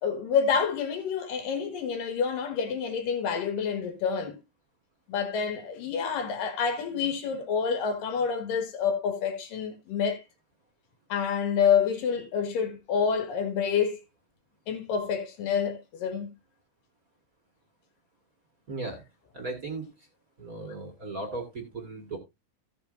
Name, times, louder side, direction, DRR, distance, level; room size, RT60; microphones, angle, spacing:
voice 1, 0.0-4.4 5.1-10.2 11.1-14.0 14.7-16.3, left 6 dB, 75° left, 3.5 m, -28 dB
voice 2, 18.7-19.0 19.3-19.8 20.4-22.2, right 3 dB, 40° right, 1.4 m, -36 dB
15.5 x 6.8 x 2.5 m
omnidirectional pair, 3.9 m